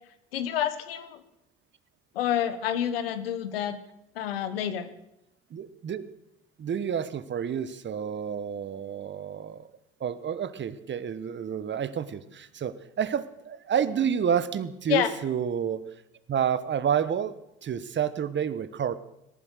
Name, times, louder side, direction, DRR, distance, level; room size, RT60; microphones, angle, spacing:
voice 1, 0.3-1.2 2.1-3.8 4.1-4.9 14.9-15.1, left 10 dB, 85° left, 11 dB, 1.4 m, -28 dB
voice 2, 5.5-6.1 6.6-9.7 10.0-15.8 16.3-17.3 17.6-19.0, right 8 dB, 40° right, 14 dB, 1.3 m, -29 dB
19.0 x 11.0 x 6.5 m, 0.85 s
hypercardioid pair, 65°, 29 cm